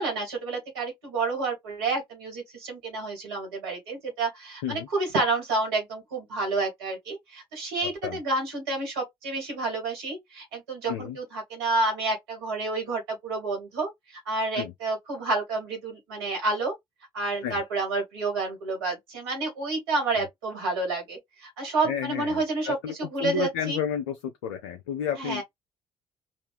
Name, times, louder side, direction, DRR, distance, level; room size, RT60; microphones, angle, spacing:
voice 1, 0.0-16.7 17.1-23.8 25.2-25.4, right 3 dB, 85° right, 2.1 m, -29 dB
voice 2, 21.8-22.9 23.2-24.2 24.4-25.4, left 7 dB, 80° left, 0.6 m, -31 dB
4.3 x 2.5 x 3.4 m
hypercardioid pair, 50°, 12 cm